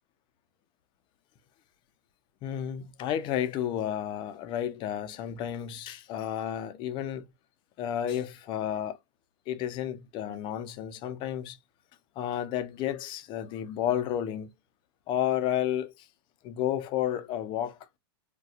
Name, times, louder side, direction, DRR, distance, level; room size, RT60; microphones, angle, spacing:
voice 1, 2.4-7.3 7.8-9.0 9.5-11.6 12.2-14.5 15.1-16.1 16.4-17.8, left 10 dB, 35° left, 0.6 m, -31 dB
4.1 x 2.2 x 2.4 m
hypercardioid pair, 130°, 15 cm